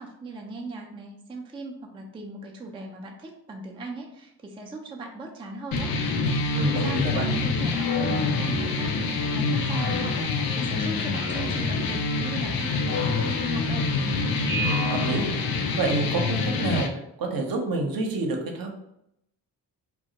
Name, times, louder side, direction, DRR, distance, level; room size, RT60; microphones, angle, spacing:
voice 1, 0.0-5.9 6.3-13.9, right 3 dB, 15° right, 1 dB, 0.3 m, -39 dB
sound 1, 5.7-16.9, left 3 dB, 55° left, 0.5 m, -26 dB
voice 2, 6.5-7.3 14.6-15.2 15.7-16.9 17.2-18.7, right 2 dB, 55° right, 2 dB, 0.7 m, -27 dB
Speech synthesizer, 7.7-8.8 9.5-10.5 11.1-11.8 12.8-13.7 14.4-15.6, left 2 dB, 85° left, 0.9 m, -34 dB
2.2 x 2.0 x 2.8 m, 0.79 s
supercardioid pair, 50°, 42 cm